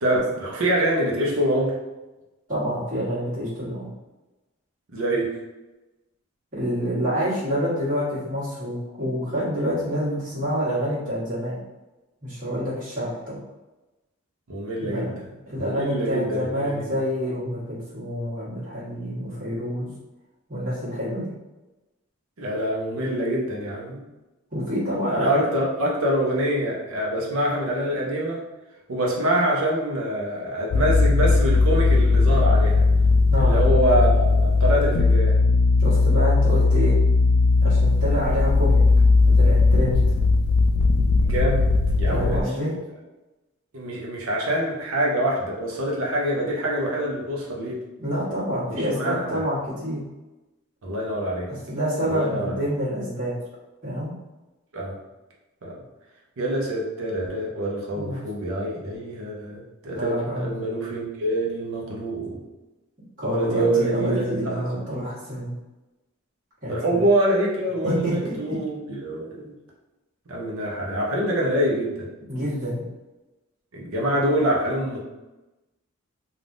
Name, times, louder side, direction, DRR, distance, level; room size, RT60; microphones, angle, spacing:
voice 1, 0.0-1.8 4.9-5.4 14.5-15.1 15.6-17.0 22.4-24.0 25.1-28.4 28.9-32.8 33.3-35.4 41.2-41.7 42.0-42.7 43.7-47.8 48.6-49.4 50.8-51.5 52.1-52.5 54.7-55.0 55.6-55.8 56.4-62.4 63.2-64.5 66.7-69.5 70.3-72.1 73.7-75.0, right 1 dB, 80° right, -3 dB, 0.7 m, -25 dB
voice 2, 2.5-3.9 6.5-11.6 12.2-13.4 14.8-15.1 15.4-19.9 20.5-21.3 24.5-25.6 33.3-33.5 35.8-37.0 37.6-38.8 39.2-40.0 42.1-42.7 48.0-50.0 51.5-53.3 53.8-54.1 57.9-58.2 59.9-60.5 63.2-65.5 66.6-67.0 67.8-68.3 72.3-72.8, equal, 40° right, -11 dB, 1.4 m, -27 dB
sound 1, 30.7-42.4, left 3 dB, 80° left, 0.3 m, -18 dB
3.4 x 2.4 x 2.5 m, 1.1 s
head